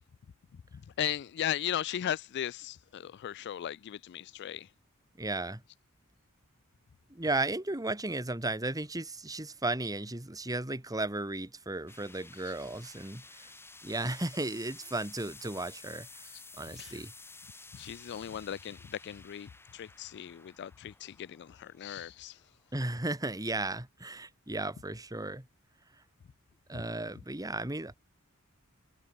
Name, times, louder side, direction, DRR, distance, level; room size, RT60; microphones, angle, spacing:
voice 1, 1.0-4.7 16.7-17.0 17.7-22.3, left 10 dB, 55° left, 0.3 m, -37 dB
voice 2, 5.2-5.6 7.1-13.5 13.8-16.2 16.6-17.1 22.7-25.5 26.7-27.9, right 2 dB, 15° right, 2.1 m, -35 dB
sound 1, 11.9-23.0, left 3 dB, 10° left, 5.5 m, -53 dB
head